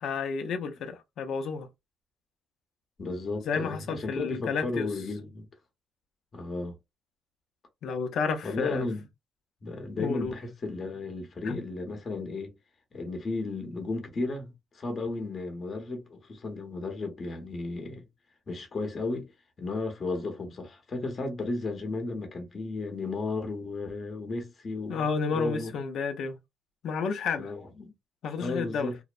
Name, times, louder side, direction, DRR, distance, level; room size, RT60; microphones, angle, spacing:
voice 1, 0.0-1.7 3.5-4.9 7.8-8.9 10.0-10.3 11.4-11.6 24.9-26.4 26.8-27.5 28.2-28.9, left 5 dB, 70° left, 0.5 m, -31 dB
voice 2, 3.0-5.5 6.3-6.7 8.4-9.1 9.6-12.5 12.9-18.1 18.5-19.3 19.6-25.7 27.4-27.9 28.4-29.0, left 3 dB, 40° left, 0.8 m, -34 dB
2.6 x 2.0 x 2.4 m
cardioid pair, 90°, 0 cm